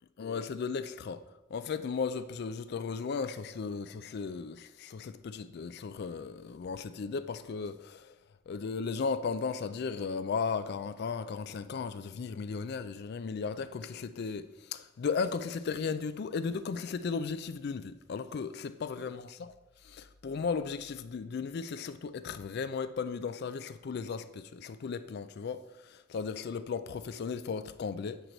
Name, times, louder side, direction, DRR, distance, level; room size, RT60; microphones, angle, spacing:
voice 1, 0.2-1.2 1.5-8.2 8.5-19.5 19.8-28.2, left 5 dB, 50° left, 0.3 m, -36 dB
7.8 x 4.5 x 3.9 m
head